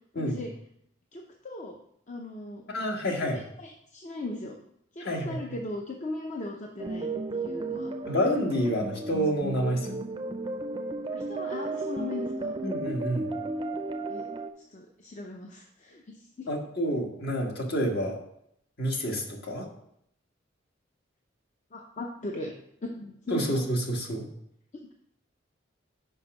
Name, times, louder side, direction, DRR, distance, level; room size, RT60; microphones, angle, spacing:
voice 1, 0.1-0.5 1.1-1.8 2.1-2.6 3.2-4.5 4.9-7.9 11.1-12.5 14.1-14.2 14.7-16.5 21.7-22.5 22.8-23.5, left 2 dB, 40° left, 1 dB, 0.6 m, -38 dB
voice 2, 2.7-3.4 5.0-5.4 8.1-10.0 12.6-13.3 16.5-18.2 18.8-19.7 23.3-24.2, equal, 55° left, 1 dB, 1.5 m, -28 dB
sound 1, 6.8-14.5, right 2 dB, 25° right, 0.5 m, -34 dB
5.6 x 5.1 x 5.9 m, 0.73 s
head